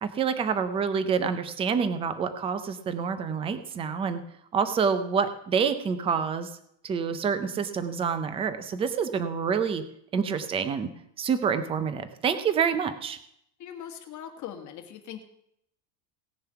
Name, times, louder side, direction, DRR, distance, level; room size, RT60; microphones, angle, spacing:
voice 1, 0.0-4.2 4.5-6.5 6.8-9.8 10.1-10.9 11.2-13.2, right 6 dB, 15° right, 11 dB, 0.4 m, -27 dB
voice 2, 13.6-15.2, left 9 dB, 35° left, 5 dB, 1.7 m, -40 dB
17.5 x 6.9 x 5.7 m, 0.74 s
cardioid pair, 170°, 49 cm